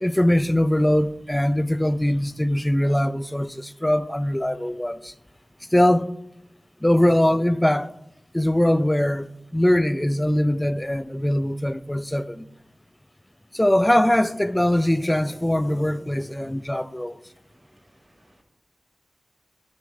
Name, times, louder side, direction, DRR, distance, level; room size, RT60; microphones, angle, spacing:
voice 1, 0.0-5.1 5.7-6.1 6.8-7.9 8.3-12.5 13.5-17.2, left 1 dB, 15° left, 0.3 m, -21 dB
voice 2, 17.7-18.4, right 1 dB, 70° right, 2.0 m, -62 dB
6.8 x 6.2 x 3.2 m
cardioid pair, 50°, 0 cm